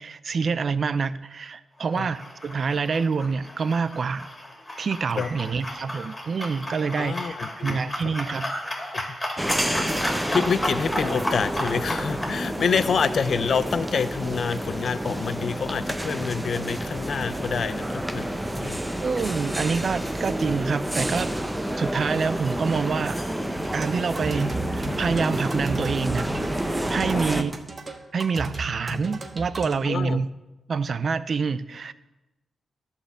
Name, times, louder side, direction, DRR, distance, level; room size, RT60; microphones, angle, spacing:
voice 1, 0.0-4.3 4.8-8.5 19.0-21.3 21.8-23.2 23.7-27.5 28.1-30.3 30.7-31.9, right 5 dB, 60° right, 15 dB, 0.4 m, -27 dB
sound 1, 1.9-12.4, left 1 dB, 20° left, 2.5 m, -33 dB
voice 2, 7.0-8.0 8.9-9.1 9.6-18.3 18.6-18.8 29.8-30.2, left 6 dB, 65° left, 14 dB, 0.5 m, -27 dB
sound 2, 9.4-27.4, right 1 dB, 10° right, 0.8 m, -29 dB
sound 3, 23.6-29.7, right 2 dB, 40° right, 1.2 m, -35 dB
11.0 x 4.4 x 7.1 m, 1.0 s
cardioid pair, 65°, 0 cm